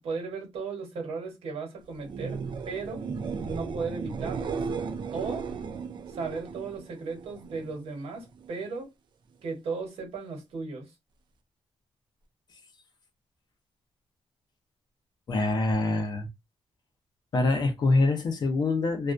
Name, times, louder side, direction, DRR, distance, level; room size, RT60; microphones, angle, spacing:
voice 1, 0.0-3.0 3.4-4.6 5.1-5.5 6.1-8.9 9.4-10.9, right 4 dB, 75° right, 1.0 m, -36 dB
sound 1, 2.0-7.7 8.1-8.7 15.7-15.8, right 5 dB, 45° right, 0.4 m, -35 dB
voice 2, 15.3-16.3 17.3-19.1, left 2 dB, 45° left, 0.6 m, -25 dB
2.2 x 2.2 x 2.5 m
wide cardioid pair, 175°, 10 cm